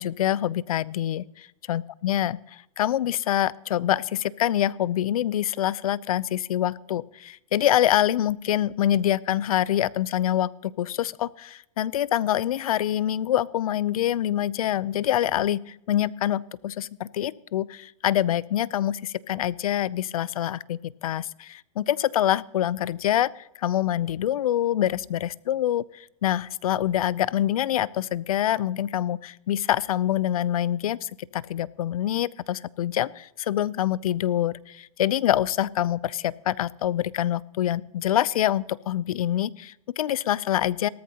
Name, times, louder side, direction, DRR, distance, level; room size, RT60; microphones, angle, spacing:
voice 1, 0.0-2.4 2.8-25.8 26.2-40.9, left 12 dB, 80° left, 21 dB, 0.6 m, -25 dB
18.0 x 14.0 x 2.9 m, 0.81 s
hypercardioid pair, 145°, 18 cm